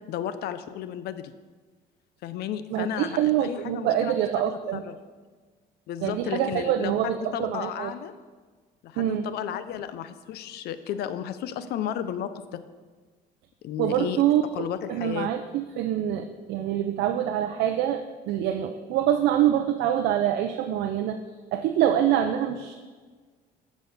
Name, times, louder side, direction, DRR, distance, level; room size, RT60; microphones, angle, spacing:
voice 1, 0.1-1.3 2.2-5.0 5.9-8.1 8.8-12.6 13.6-14.2 14.5-15.3, left 10 dB, 70° left, 12 dB, 0.6 m, -33 dB
voice 2, 2.7-4.8 6.0-7.9 9.0-9.3 13.8-21.2 21.5-22.7, right 11 dB, 85° right, 6 dB, 0.6 m, -25 dB
7.9 x 5.0 x 6.9 m, 1.4 s
cardioid pair, 110°, 17 cm